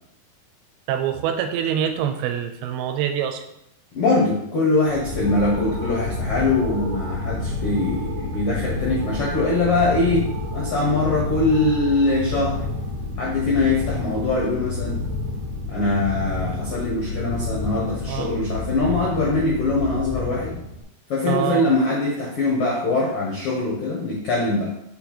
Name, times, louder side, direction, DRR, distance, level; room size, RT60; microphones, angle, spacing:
voice 1, 0.9-3.4 18.1-18.3 21.3-21.6, right 9 dB, 85° right, 7 dB, 2.5 m, -25 dB
voice 2, 3.9-12.6 13.2-15.0 15.7-20.6 21.1-24.7, left 2 dB, 80° left, -4 dB, 1.3 m, -22 dB
sound 1, 4.8-20.8, left 3 dB, 50° right, 2.5 m, -29 dB
6.8 x 4.1 x 4.4 m, 0.78 s
omnidirectional pair, 4.5 m